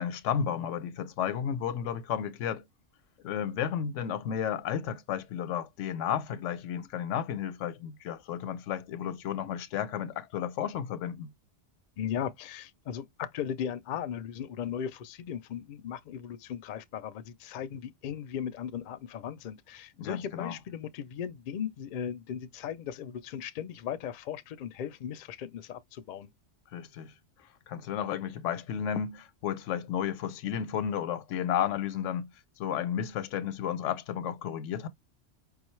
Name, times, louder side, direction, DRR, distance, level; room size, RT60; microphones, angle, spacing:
voice 1, 0.0-2.7 3.2-11.3 20.0-20.5 26.7-27.1 27.7-32.3 32.6-34.9, left 9 dB, 85° left, 0.9 m, -32 dB
voice 2, 12.0-26.3, left 8 dB, 60° left, 0.5 m, -37 dB
4.9 x 2.3 x 3.0 m
omnidirectional pair, 1.2 m